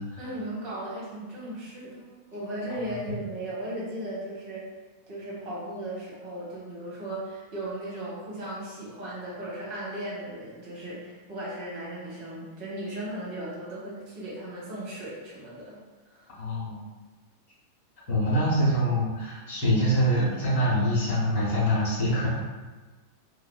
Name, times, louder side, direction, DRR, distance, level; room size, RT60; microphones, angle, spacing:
voice 1, 0.2-4.6 5.1-15.8 16.1-16.3, right 1 dB, 45° right, -7 dB, 1.1 m, -36 dB
voice 2, 16.3-16.8 18.1-22.3, equal, 55° left, -8 dB, 0.9 m, -24 dB
2.5 x 2.3 x 2.2 m, 1.3 s
figure-of-eight pair, 90°, 0 cm